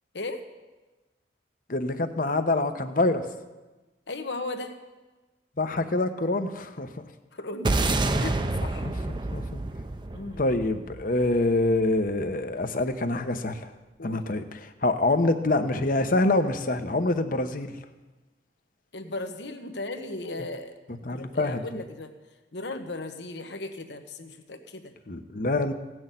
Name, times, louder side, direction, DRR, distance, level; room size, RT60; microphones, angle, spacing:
voice 1, 1.7-3.3 5.6-7.0 8.8-9.6 10.4-13.7 14.0-17.8 21.0-21.8 25.1-25.7, left 2 dB, 50° left, 8 dB, 1.0 m, -26 dB
voice 2, 4.1-4.7 7.3-7.8 8.2-8.9 10.1-10.4 14.0-14.2 18.9-20.7 21.1-22.1 22.5-24.9, left 2 dB, 75° left, 6 dB, 1.3 m, -36 dB
sound 1, 7.6-12.1, right 2 dB, 25° right, 0.6 m, -28 dB
16.5 x 6.4 x 9.1 m, 1.2 s
head